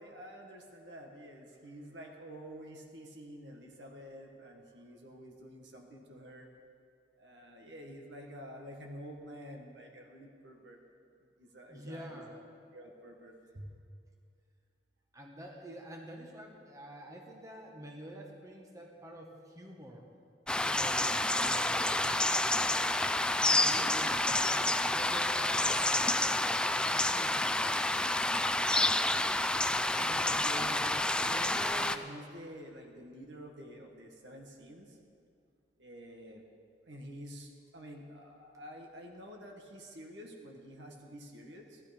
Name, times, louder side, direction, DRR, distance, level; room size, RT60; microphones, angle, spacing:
voice 1, 0.0-6.5 7.2-10.8 11.4-12.4 12.7-13.7 23.7-24.0 29.2-35.0 35.8-36.4 36.8-41.8, equal, 90° right, 1 dB, 1.6 m, -48 dB
voice 2, 11.7-12.4 15.1-20.0 20.6-21.2 21.4-22.3 23.5-28.0, right 1 dB, 20° right, 0 dB, 1.5 m, -48 dB
sound 1, 20.5-32.0, left 1 dB, 5° left, 0.3 m, -29 dB
15.5 x 12.0 x 5.2 m, 2.3 s
head